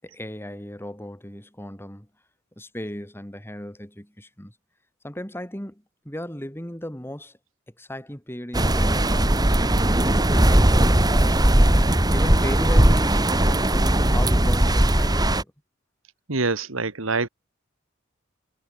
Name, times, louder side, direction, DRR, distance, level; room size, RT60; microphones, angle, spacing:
voice 1, 0.0-2.1 2.6-4.5 5.0-7.4 7.8-11.6 12.1-15.5, equal, 10° left, 5.9 m, -36 dB
sound 1, 8.5-15.4, right 1 dB, 20° right, 1.8 m, -18 dB
voice 2, 16.3-17.3, right 3 dB, 80° right, 1.9 m, -25 dB
head